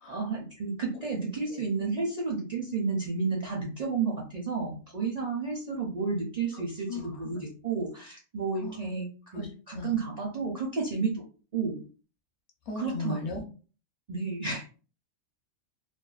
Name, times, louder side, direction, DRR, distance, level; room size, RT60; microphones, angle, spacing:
voice 1, 0.1-11.3 11.5-11.9 12.8-13.2 14.1-14.7, right 4 dB, 55° right, -2 dB, 0.4 m, -31 dB
voice 2, 12.7-13.4, left 3 dB, 65° left, 2 dB, 0.9 m, -35 dB
2.5 x 2.2 x 2.3 m, 0.37 s
omnidirectional pair, 1.3 m